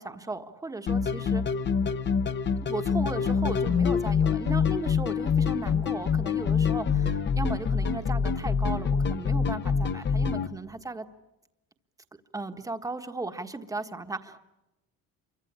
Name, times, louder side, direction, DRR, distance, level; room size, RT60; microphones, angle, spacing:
voice 1, 0.0-1.4 2.6-11.1 12.3-14.4, right 3 dB, 10° right, 7 dB, 1.4 m, -36 dB
sound 1, 0.9-10.5, left 6 dB, 35° left, 1.0 m, -26 dB
27.5 x 24.0 x 8.8 m, 1.0 s
cardioid pair, 140°, 33 cm